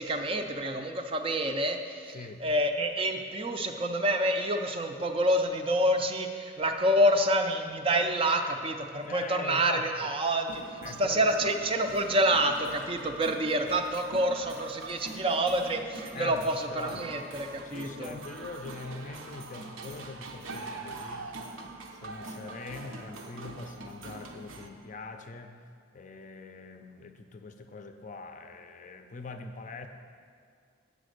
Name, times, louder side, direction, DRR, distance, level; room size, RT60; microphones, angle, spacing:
voice 1, 0.0-18.1, right 1 dB, 25° right, 5 dB, 0.4 m, -28 dB
voice 2, 2.1-2.4 9.0-10.1 10.8-11.3 16.1-17.1 17.6-21.3 21.9-25.6 25.9-29.9, left 3 dB, 40° left, 6 dB, 0.5 m, -43 dB
sound 1, 10.5-24.7, right 2 dB, 80° right, 0.7 m, -43 dB
8.3 x 5.1 x 6.5 m, 2.2 s
head